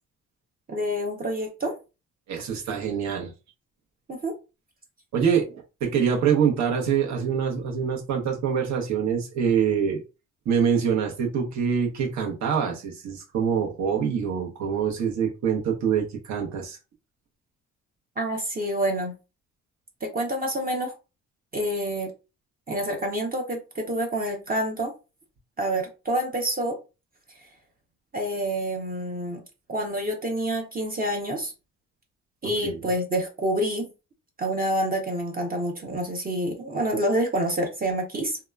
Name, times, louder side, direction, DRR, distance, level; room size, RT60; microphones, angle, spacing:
voice 1, 0.7-1.7 2.7-2.8 4.1-4.3 18.2-19.1 20.0-20.9 21.5-22.1 22.7-24.9 25.6-26.8 28.1-29.4 29.7-31.5 32.4-33.9 34.4-38.4, right 1 dB, 30° right, 0.7 m, -27 dB
voice 2, 2.3-3.3 5.1-10.0 10.4-16.8 32.6-32.8, right 7 dB, 65° right, 0.9 m, -25 dB
2.8 x 2.2 x 2.3 m
cardioid pair, 90°, 30 cm